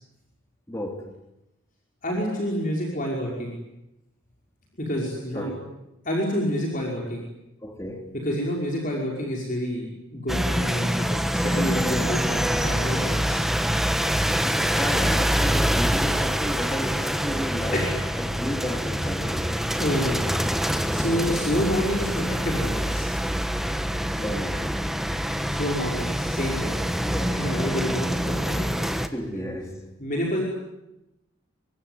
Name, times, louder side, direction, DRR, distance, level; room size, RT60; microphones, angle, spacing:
voice 1, 0.7-1.1 5.3-5.6 7.6-8.2 14.8-17.9 18.2-19.5 24.2-24.9 26.9-27.4 29.1-29.8, equal, 15° left, 3.6 m, -33 dB
voice 2, 2.0-3.5 4.8-5.5 6.0-7.2 8.2-13.4 17.7-18.0 19.8-20.4 20.6-23.1 25.5-26.8 27.3-28.7 29.0-29.1 30.0-30.5, equal, 40° left, 5.5 m, -28 dB
sound 1, 10.3-29.1, equal, ahead, 1.2 m, -25 dB
25.5 x 24.0 x 9.7 m
head